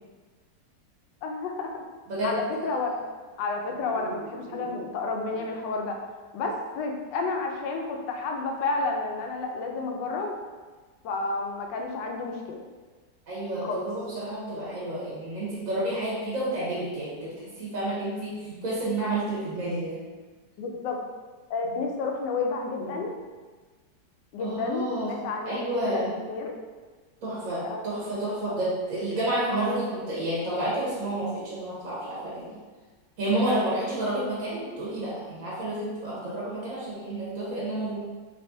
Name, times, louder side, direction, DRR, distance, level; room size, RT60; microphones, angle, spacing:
voice 1, 1.2-1.8 2.2-3.0 3.4-6.0 6.3-10.3 11.0-12.6 13.6-13.9 20.6-21.0 21.5-23.1 24.3-26.6 27.6-27.8 28.3-28.4 29.5-29.6, left 3 dB, 85° left, 2 dB, 1.2 m, -31 dB
voice 2, 3.9-4.7 13.3-20.0 21.6-21.7 22.8-22.9 24.4-25.1 25.4-26.2 27.2-32.5 33.2-38.0, right 1 dB, 55° right, -8 dB, 1.3 m, -30 dB
3.6 x 3.3 x 2.6 m, 1.4 s
omnidirectional pair, 1.9 m